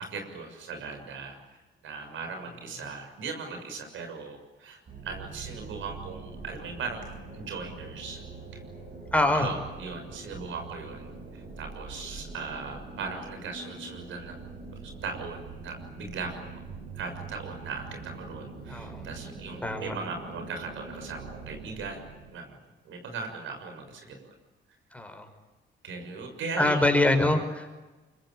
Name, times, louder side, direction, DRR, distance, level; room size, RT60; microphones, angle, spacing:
voice 1, 0.0-1.6 1.8-7.1 7.3-8.2 9.3-14.4 14.8-16.6 16.9-22.0 22.3-22.6 22.8-24.3 25.8-26.8, right 4 dB, 80° right, 5 dB, 6.7 m, -38 dB
sound 1, 4.9-22.3, right 4 dB, 45° right, 5.9 m, -43 dB
voice 2, 9.1-9.5 18.7-19.1 19.6-19.9 24.9-25.3 26.6-27.7, left 1 dB, 5° left, 4 dB, 5.5 m, -24 dB
25.0 x 24.0 x 9.0 m, 1.2 s
cardioid pair, 90°, 20 cm